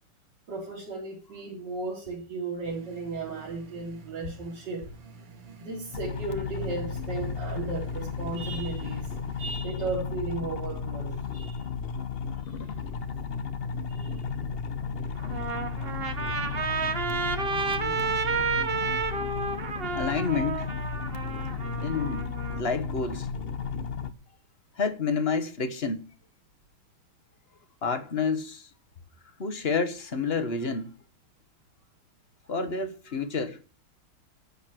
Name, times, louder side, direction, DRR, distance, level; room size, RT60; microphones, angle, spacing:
voice 1, 0.5-4.8 5.6-9.1 9.4-11.6 13.9-14.2, right 3 dB, 55° right, 3.4 m, -35 dB
sound 1, 2.6-9.5, right 4 dB, 85° right, 2.6 m, -50 dB
sound 2, 5.9-24.1, left 5 dB, 75° left, 0.5 m, -34 dB
Trumpet, 15.2-22.6, right 4 dB, 35° right, 1.0 m, -31 dB
voice 2, 16.7-17.1 17.5-18.0 19.9-20.7 21.8-23.3 24.7-26.1 27.8-28.7 29.4-30.9 32.5-33.6, left 4 dB, 40° left, 1.0 m, -30 dB
11.5 x 8.3 x 7.5 m
omnidirectional pair, 2.4 m